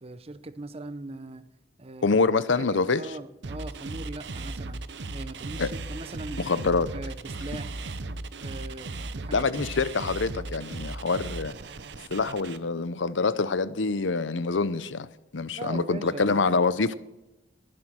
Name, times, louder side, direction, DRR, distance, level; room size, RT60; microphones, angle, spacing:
voice 1, 0.0-1.5 1.8-2.2 2.6-4.8 5.1-6.5 6.9-7.8 8.4-9.5 15.6-16.4, right 2 dB, 35° right, 0.8 m, -40 dB
voice 2, 2.0-3.0 5.6-5.7 6.4-6.9 9.3-11.5 12.1-15.1 15.3-16.9, left 4 dB, 90° left, 0.8 m, -25 dB
sound 1, 3.4-12.6, right 2 dB, 65° right, 0.8 m, -37 dB
21.0 x 7.7 x 6.3 m
head